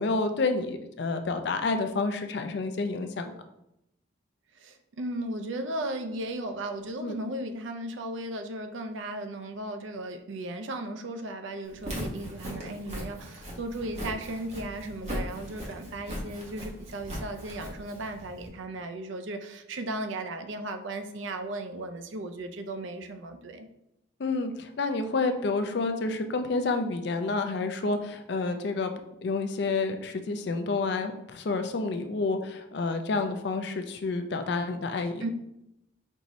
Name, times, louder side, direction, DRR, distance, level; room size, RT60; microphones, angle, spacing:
voice 1, 0.0-3.3 7.0-7.2 24.2-28.9 29.2-35.2, left 3 dB, 55° left, 7 dB, 0.4 m, -29 dB
voice 2, 4.6-23.7 35.2-35.3, right 1 dB, 70° right, 7 dB, 0.5 m, -36 dB
Walk footsteps, 11.7-18.5, equal, 35° right, 1.0 m, -39 dB
5.4 x 2.6 x 3.0 m, 0.83 s
head